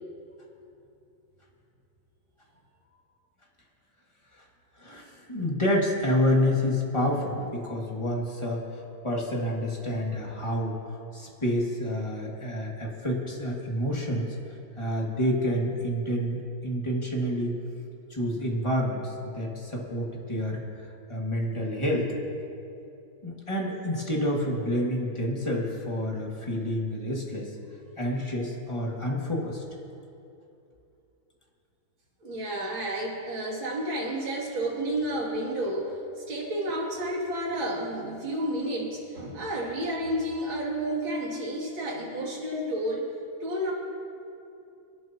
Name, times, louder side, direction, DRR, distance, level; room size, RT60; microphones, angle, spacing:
voice 1, 4.8-17.5 18.1-22.2 23.2-27.6 28.0-29.6, equal, 15° left, -2 dB, 2.0 m, -29 dB
voice 2, 32.2-43.1 43.4-43.7, right 1 dB, 80° right, -4 dB, 3.4 m, -31 dB
26.0 x 11.0 x 2.9 m, 2.7 s
omnidirectional pair, 2.1 m